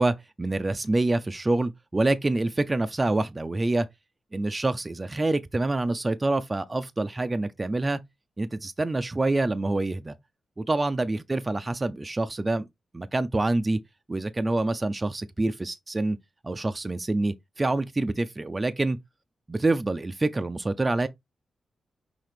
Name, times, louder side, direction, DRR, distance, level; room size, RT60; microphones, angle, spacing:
voice 1, 0.0-3.9 4.3-8.0 8.4-10.1 10.6-12.7 12.9-13.8 14.1-16.2 16.4-19.0 19.5-21.1, right 2 dB, 25° right, 0.4 m, -26 dB
5.7 x 2.8 x 3.2 m
cardioid pair, 95°, 0 cm